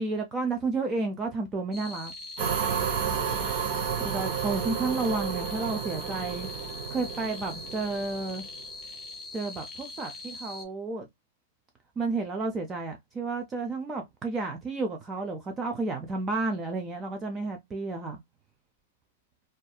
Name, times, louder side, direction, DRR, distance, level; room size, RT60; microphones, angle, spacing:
voice 1, 0.0-2.1 4.0-6.5 6.9-8.4 9.3-11.1 12.0-18.2, right 3 dB, 20° right, 0.4 m, -31 dB
sound 1, 1.7-10.7, left 2 dB, 10° left, 0.9 m, -42 dB
sound 2, 2.4-8.6, right 7 dB, 50° right, 0.7 m, -32 dB
2.6 x 2.3 x 2.2 m
hypercardioid pair, 145°, 0 cm